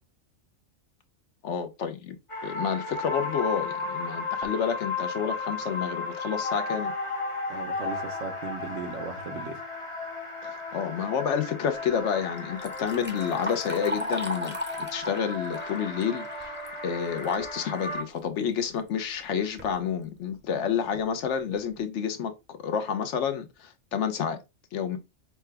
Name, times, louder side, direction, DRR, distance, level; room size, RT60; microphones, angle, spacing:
voice 1, 1.4-2.2 2.4-6.9 10.4-16.5 16.8-24.4 24.7-25.0, left 7 dB, 70° left, 1.0 m, -29 dB
sound 1, 2.3-18.0, left 3 dB, 30° left, 0.7 m, -34 dB
voice 2, 7.5-9.6, right 6 dB, 75° right, 1.1 m, -37 dB
Liquid, 12.4-17.5 17.9-18.0 18.9-19.0 19.4-19.7 20.3-20.4 20.9-21.0 21.5-21.7, left 1 dB, 10° right, 0.6 m, -37 dB
5.7 x 2.2 x 3.3 m
omnidirectional pair, 1.3 m